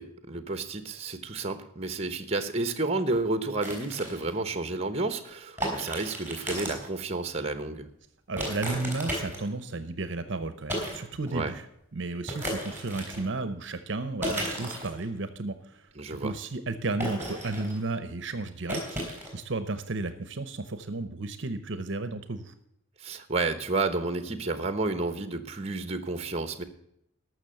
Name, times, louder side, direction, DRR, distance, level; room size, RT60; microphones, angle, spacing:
voice 1, 0.0-7.9 11.3-11.5 15.9-16.3 23.0-26.6, right 3 dB, 30° right, 10 dB, 1.0 m, -31 dB
sound 1, 3.6-4.3 5.6-6.9 8.4-9.6 10.7-11.0 11.3-11.4 12.3-13.3 14.2-15.0 17.0-17.9 18.7-19.3, equal, 10° right, 3.8 m, -34 dB
voice 2, 8.3-11.6 11.9-22.5, right 3 dB, 55° right, 11 dB, 0.8 m, -33 dB
13.5 x 6.3 x 7.6 m, 0.76 s
head